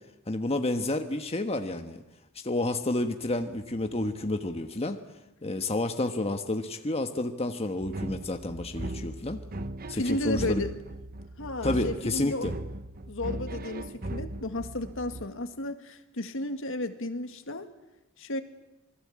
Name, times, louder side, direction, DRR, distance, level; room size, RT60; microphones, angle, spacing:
voice 1, 0.3-2.0 2.4-5.0 5.4-9.4 9.9-10.6 11.6-12.5, left 2 dB, 30° left, 6 dB, 1.3 m, -30 dB
sound 1, 7.8-15.3, right 1 dB, 45° right, 1.0 m, -38 dB
voice 2, 9.9-10.8 11.4-12.5 13.1-17.7 18.2-18.4, left 2 dB, 65° left, 8 dB, 1.9 m, -33 dB
27.5 x 20.5 x 8.7 m, 0.97 s
head